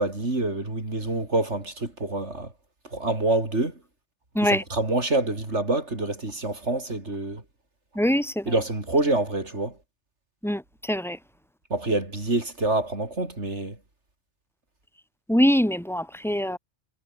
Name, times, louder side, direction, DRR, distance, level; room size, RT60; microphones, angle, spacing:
voice 1, 0.0-2.5 2.9-3.8 4.4-7.4 8.5-9.8 11.7-13.8, right 2 dB, 80° right, 5.2 m, -26 dB
voice 2, 7.9-8.5 10.4-11.2 15.3-16.6, equal, ahead, 3.0 m, -23 dB
omnidirectional pair, 1.2 m